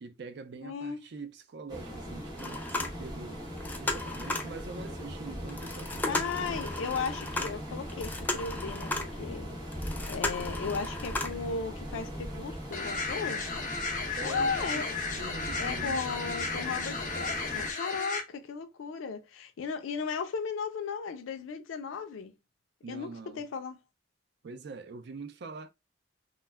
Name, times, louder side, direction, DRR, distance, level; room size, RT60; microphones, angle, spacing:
voice 1, 0.0-3.5 3.8-6.6 14.2-14.9 15.1-16.0 22.8-23.4 24.4-25.7, right 4 dB, 60° right, 0.4 m, -44 dB
voice 2, 0.6-1.0 6.1-9.5 10.1-13.5 14.2-15.0 15.6-22.3 22.9-23.8, left 5 dB, 90° left, 0.4 m, -36 dB
sound 1, 1.7-17.7, equal, 20° right, 0.8 m, -40 dB
sound 2, 2.4-3.3 3.6-4.6 5.5-9.2 9.7-11.5 12.0-12.1 12.5-12.6, left 2 dB, 10° left, 0.3 m, -35 dB
sound 3, 12.7-18.2, left 4 dB, 40° left, 0.7 m, -34 dB
2.2 x 2.0 x 3.3 m
head